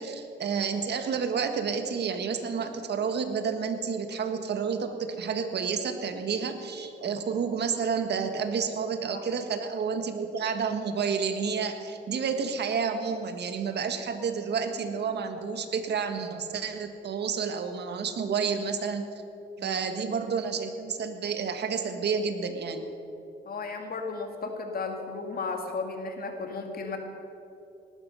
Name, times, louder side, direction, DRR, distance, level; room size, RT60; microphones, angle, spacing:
voice 1, 0.0-19.1 19.6-22.8, right 6 dB, 60° right, 7 dB, 1.6 m, -30 dB
voice 2, 23.5-27.0, left 4 dB, 50° left, 3 dB, 2.3 m, -34 dB
19.0 x 12.5 x 5.6 m, 2.9 s
cardioid pair, 90°, 20 cm